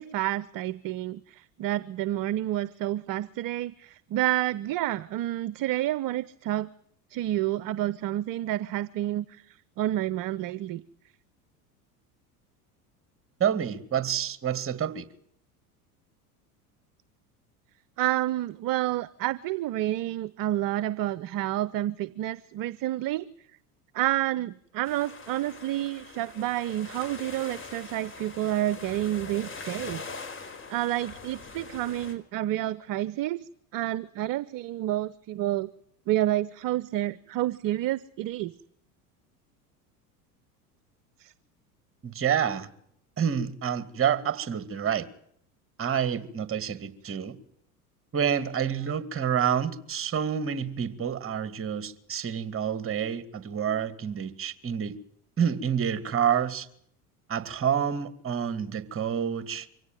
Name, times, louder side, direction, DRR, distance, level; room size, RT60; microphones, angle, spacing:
voice 1, 0.0-6.7 7.1-9.4 9.8-10.8 18.0-23.3 23.9-30.0 30.7-33.4 33.7-35.7 36.1-38.5 41.2-41.3 47.1-47.2, right 14 dB, 45° right, 0.9 m, -29 dB
voice 2, 13.4-15.1 42.0-42.7 43.2-45.1 45.8-47.4 48.1-55.0 55.4-56.7 57.3-59.7, right 8 dB, 30° right, 2.3 m, -28 dB
sound 1, 24.8-32.1, left 4 dB, 25° left, 4.9 m, -42 dB
24.5 x 17.0 x 9.3 m
hypercardioid pair, 80°, 46 cm